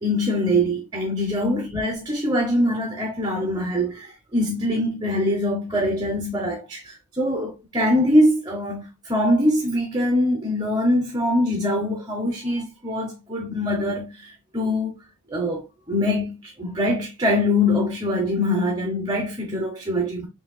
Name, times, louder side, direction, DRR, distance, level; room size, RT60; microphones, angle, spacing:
voice 1, 0.0-14.9 15.3-20.3, left 1 dB, 20° right, 0.8 m, -23 dB
6.1 x 2.7 x 2.2 m
head